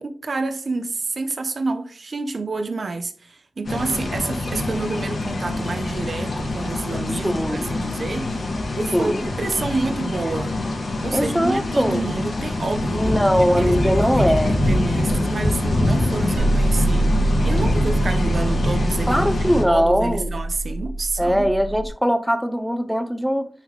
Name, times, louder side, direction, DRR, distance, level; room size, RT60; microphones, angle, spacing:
voice 1, 0.0-10.5 11.0-19.3 19.7-21.5, right 3 dB, 50° right, 0.8 m, -29 dB
sound 1, 3.6-19.6, left 1 dB, 70° left, 2.3 m, -24 dB
voice 2, 7.2-7.7 8.9-9.2 11.1-12.1 12.9-14.5 17.5-17.7 19.1-20.3 21.2-23.5, equal, ahead, 0.6 m, -21 dB
sound 2, 16.4-21.9, right 1 dB, 80° right, 0.8 m, -24 dB
9.7 x 3.4 x 3.2 m
wide cardioid pair, 100°, 0 cm